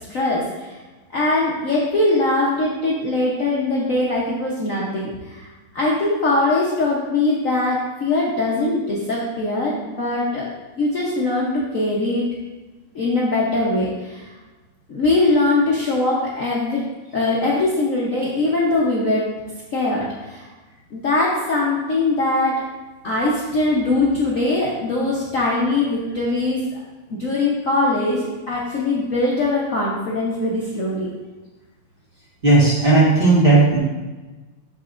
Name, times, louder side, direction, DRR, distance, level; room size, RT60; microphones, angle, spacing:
voice 1, 0.1-0.8 1.1-5.5 5.7-10.4 10.8-12.3 12.9-14.3 14.9-16.8 17.1-19.2 19.7-20.5 20.9-22.6 23.0-26.8 27.2-31.1, left 2 dB, 55° left, -5 dB, 1.0 m, -21 dB
voice 2, 32.4-33.8, right 3 dB, 30° right, -7 dB, 1.5 m, -14 dB
12.0 x 4.1 x 2.5 m, 1.2 s
omnidirectional pair, 2.3 m